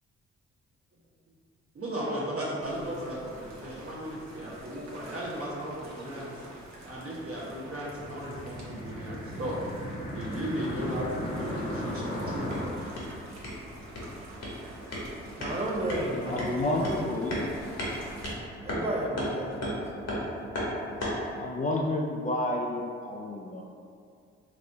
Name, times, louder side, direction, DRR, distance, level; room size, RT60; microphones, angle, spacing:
voice 1, 1.7-6.3 6.8-9.6 10.1-12.5, equal, 50° right, -6 dB, 1.1 m, -35 dB
sound 1, 2.6-18.3, right 1 dB, 65° right, 0.8 m, -47 dB
sound 2, 7.5-12.7, equal, 85° left, 1.2 m, -37 dB
sound 3, 12.2-21.3, equal, 55° left, 1.1 m, -36 dB
voice 2, 15.4-16.9 18.6-19.8, right 1 dB, 20° right, -2 dB, 0.7 m, -32 dB
voice 3, 16.2-17.4 20.7-20.8 21.4-23.6, left 1 dB, 30° left, -1 dB, 0.3 m, -30 dB
4.1 x 2.1 x 2.7 m, 2.3 s
supercardioid pair, 55°, 29 cm